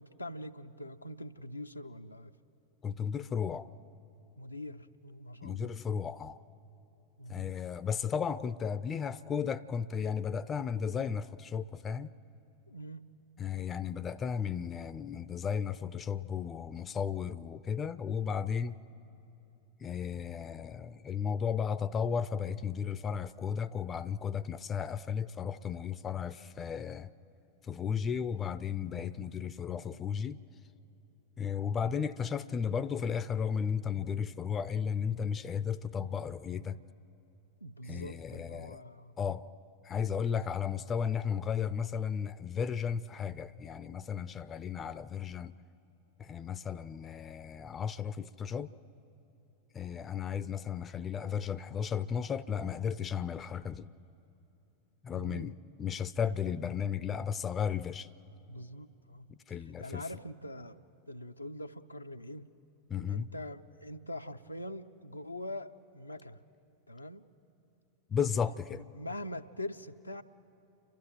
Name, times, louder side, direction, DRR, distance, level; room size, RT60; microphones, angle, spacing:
voice 1, 0.0-2.3 4.4-5.7 7.2-7.6 12.7-13.0 16.1-16.3 28.9-29.0 37.6-39.1 55.1-55.5 58.5-59.3 59.8-60.8 61.1-62.5 63.1-66.4 66.9-67.2 68.7-70.2, left 1 dB, 85° left, 0.6 m, -43 dB
voice 2, 2.8-3.7 5.4-6.4 7.3-12.1 13.4-18.8 19.8-27.1 27.6-30.4 31.4-36.8 37.9-38.8 39.2-39.5 39.8-45.6 46.2-48.7 49.7-53.9 55.0-58.1 59.5-60.0 62.9-63.3 68.1-68.8, left 7 dB, 25° left, 0.5 m, -34 dB
29.5 x 12.0 x 9.1 m
figure-of-eight pair, 90°, 0 cm